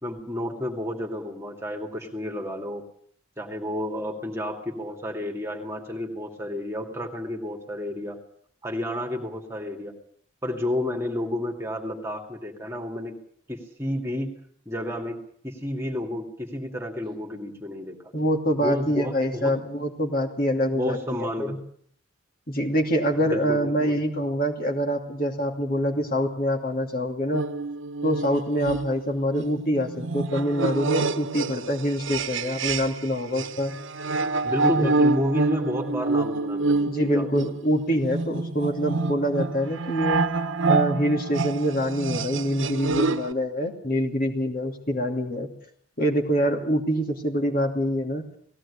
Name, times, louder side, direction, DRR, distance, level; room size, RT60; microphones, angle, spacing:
voice 1, 0.0-2.8 3.4-8.2 8.6-9.9 10.4-13.2 13.5-14.3 14.7-15.2 15.4-18.1 18.6-19.5 20.7-21.6 23.2-23.9 34.4-37.2, left 1 dB, 15° right, 2 dB, 2.5 m, -31 dB
voice 2, 18.1-21.6 22.5-27.4 28.0-33.7 34.6-34.9 36.9-45.5 46.0-48.3, equal, 45° left, 2 dB, 2.8 m, -25 dB
sound 1, 27.3-33.1 33.4-43.3, right 3 dB, 80° right, 1.1 m, -27 dB
19.0 x 16.0 x 10.0 m, 0.64 s
head